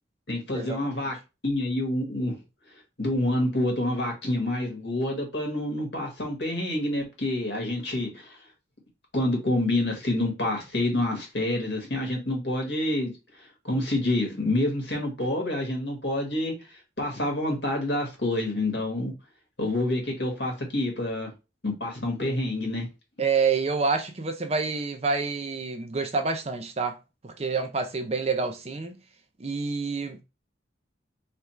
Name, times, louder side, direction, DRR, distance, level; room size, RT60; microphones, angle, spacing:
voice 1, 0.3-1.1 1.4-2.3 3.0-8.4 9.1-13.1 13.4-19.1 19.6-21.3 21.6-22.9, left 1 dB, 70° left, 1.6 m, -27 dB
voice 2, 23.2-27.0 27.2-29.0 29.4-30.2, right 4 dB, 35° right, 0.6 m, -27 dB
3.4 x 2.4 x 4.4 m
head